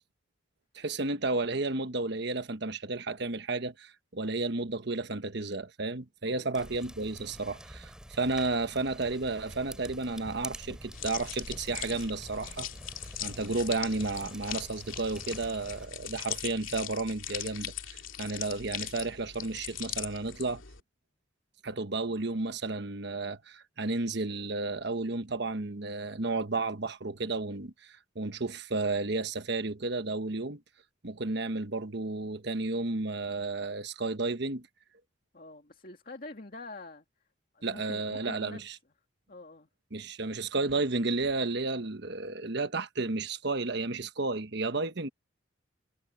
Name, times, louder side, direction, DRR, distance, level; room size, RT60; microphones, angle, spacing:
voice 1, 0.7-12.7 13.2-20.6 21.6-30.6 31.0-34.7 37.6-38.7 39.9-45.1, right 3 dB, 55° right, 1.2 m, -32 dB
sound 1, 6.5-15.9, equal, 5° right, 3.9 m, -47 dB
sound 2, 10.9-20.8, left 11 dB, 80° left, 2.6 m, -40 dB
voice 2, 35.3-37.0 37.5-38.6 39.3-39.7, left 2 dB, 45° left, 2.3 m, -46 dB
head